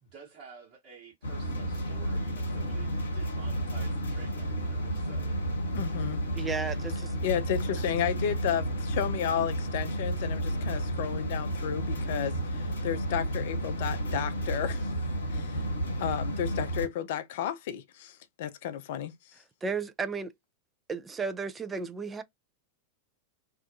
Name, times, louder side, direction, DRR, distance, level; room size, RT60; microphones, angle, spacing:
voice 1, 0.0-5.4, right 5 dB, 35° right, 1.1 m, -51 dB
sound 1, 1.2-16.9, right 1 dB, 70° left, 0.8 m, -32 dB
voice 2, 5.7-6.2 7.2-14.9 15.3-15.6 16.0-19.1, left 10 dB, 55° left, 0.4 m, -32 dB
voice 3, 6.4-7.1 19.6-20.3 20.9-22.2, right 4 dB, 15° right, 0.4 m, -33 dB
2.4 x 2.2 x 2.6 m
figure-of-eight pair, 90°, 0 cm